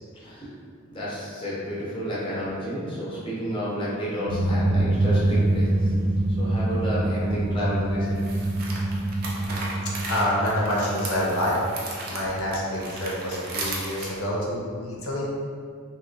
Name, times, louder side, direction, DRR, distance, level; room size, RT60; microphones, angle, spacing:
voice 1, 0.1-0.5 0.9-8.4, equal, 25° left, -8 dB, 0.6 m, -31 dB
sound 1, 4.3-11.5, right 1 dB, 85° right, 0.6 m, -25 dB
sound 2, 5.4-5.5 8.0-14.1, right 2 dB, 45° right, 0.5 m, -36 dB
voice 2, 10.1-11.6 12.1-15.3, left 1 dB, 75° left, -4 dB, 0.7 m, -27 dB
2.9 x 2.7 x 2.6 m, 2.2 s
head